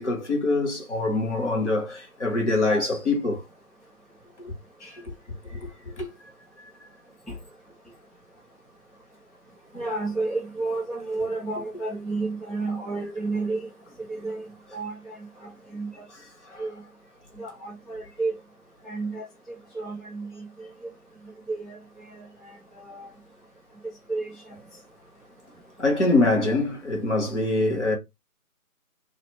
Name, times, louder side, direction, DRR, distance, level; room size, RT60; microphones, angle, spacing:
voice 1, 0.0-3.4 4.4-4.5 4.8-5.0 5.5-5.6 6.0-6.1 16.4-16.6 25.8-28.0, left 2 dB, 50° left, 1.0 m, -24 dB
voice 2, 9.8-13.7 14.1-14.5 14.7-15.2 15.4-16.0 16.6-16.7 17.4-18.3 18.9-19.3 19.7-20.7 21.5-21.8 22.8-23.1 24.1-24.3, right 3 dB, ahead, 0.4 m, -31 dB
2.4 x 2.1 x 3.0 m
figure-of-eight pair, 160°, 45 cm